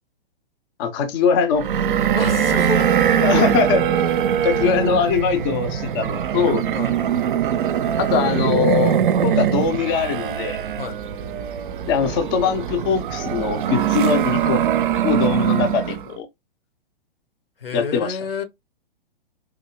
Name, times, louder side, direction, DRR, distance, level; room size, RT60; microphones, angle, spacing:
voice 1, 0.8-1.6 3.2-4.0 4.4-6.6 8.0-9.0 9.2-10.6 11.9-14.6 15.0-16.3 17.7-18.2, left 6 dB, 25° left, 0.4 m, -21 dB
sound 1, 1.6-16.1, right 9 dB, 60° right, 0.5 m, -22 dB
voice 2, 2.1-3.0 6.7-6.9 10.8-11.0 17.6-18.4, left 4 dB, 75° left, 1.0 m, -28 dB
3.7 x 2.6 x 2.9 m
figure-of-eight pair, 115°, 29 cm